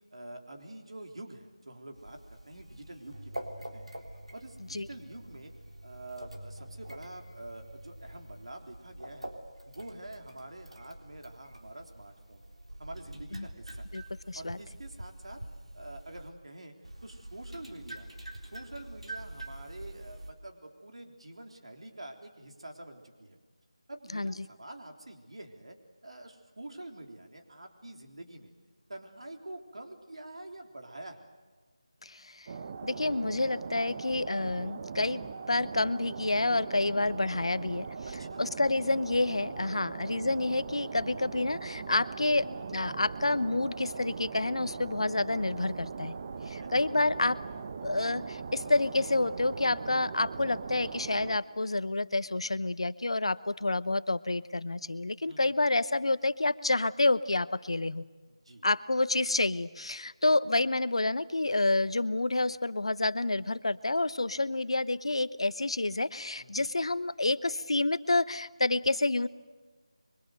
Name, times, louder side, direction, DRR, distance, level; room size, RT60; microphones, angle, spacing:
voice 1, 0.1-3.5 3.7-3.9 4.3-5.5 5.8-9.3 9.7-12.4 12.8-13.9 14.4-15.4 15.7-16.7 17.0-18.1 18.4-23.4 23.9-25.8 26.0-28.5 28.9-31.3 38.2-38.4 39.6-39.9 46.4-46.7 55.2-55.5 58.5-58.7 66.4-66.7, right 1 dB, 70° right, 3 dB, 3.6 m, -46 dB
sound 1, 1.9-16.3 16.8-20.3, right 1 dB, 85° right, 3.7 m, -46 dB
voice 2, 13.9-14.6 24.1-24.3 32.0-32.5 32.8-37.9 38.4-46.1 46.5-47.4 47.8-58.1 58.6-69.3, left 2 dB, 70° left, 15 dB, 0.9 m, -29 dB
sound 2, 32.5-51.4, right 5 dB, 30° right, 0.9 m, -40 dB
28.0 x 23.5 x 8.0 m, 1.4 s
figure-of-eight pair, 165°, 3 cm